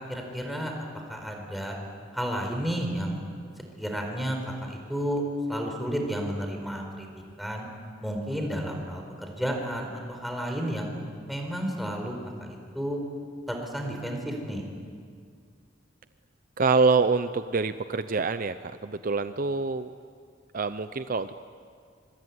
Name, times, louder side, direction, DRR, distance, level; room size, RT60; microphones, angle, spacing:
voice 1, 0.1-1.8 2.1-3.2 3.8-5.2 5.5-7.1 7.4-7.7 8.0-10.9 11.3-13.0 13.5-14.6, equal, ahead, 1 dB, 4.6 m, -32 dB
voice 2, 16.6-19.9 20.5-21.3, right 4 dB, 50° right, 11 dB, 0.7 m, -25 dB
25.0 x 24.0 x 9.7 m, 2.2 s
head